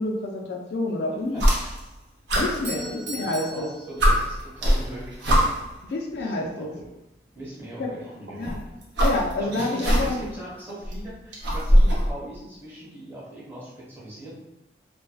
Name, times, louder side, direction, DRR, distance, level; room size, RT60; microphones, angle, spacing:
voice 1, 0.0-1.5 2.3-3.7 5.8-6.7 7.8-8.0 8.3-8.6 9.0-10.3, left 2 dB, 65° left, 1 dB, 0.3 m, -28 dB
sound 1, 1.3-2.0 2.3-3.4 3.7-3.8 4.0-5.8 6.8-6.9 8.3-10.3 10.7-12.1, equal, 80° right, 0.6 m, -22 dB
Doorbell, 2.4-4.6, right 2 dB, 35° right, 0.6 m, -39 dB
voice 2, 2.7-5.3 6.2-6.9 7.3-8.7 9.4-14.3, right 1 dB, 15° right, -9 dB, 0.9 m, -40 dB
2.5 x 2.1 x 2.3 m, 0.93 s
head